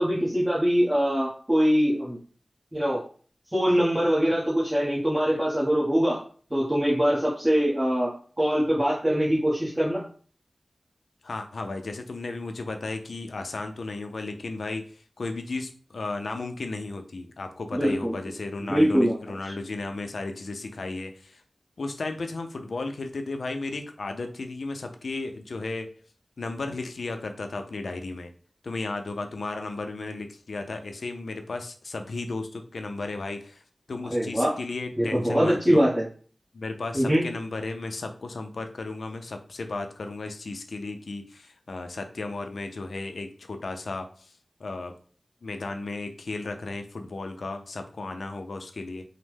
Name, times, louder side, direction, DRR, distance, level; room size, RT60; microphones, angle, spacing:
voice 1, 0.0-2.2 2.7-3.0 3.5-6.2 6.5-10.0 17.7-18.1 18.6-19.2 34.1-34.5 35.0-36.0 36.9-37.2, equal, 20° right, -7 dB, 0.9 m, -23 dB
voice 2, 11.2-14.9 15.2-21.4 21.8-25.9 26.4-28.3 28.6-33.6 33.9-35.8 36.5-44.3 44.6-44.9 45.4-49.0, left 3 dB, 85° left, 6 dB, 0.4 m, -34 dB
3.1 x 2.0 x 3.3 m, 0.43 s
wide cardioid pair, 50°, 0 cm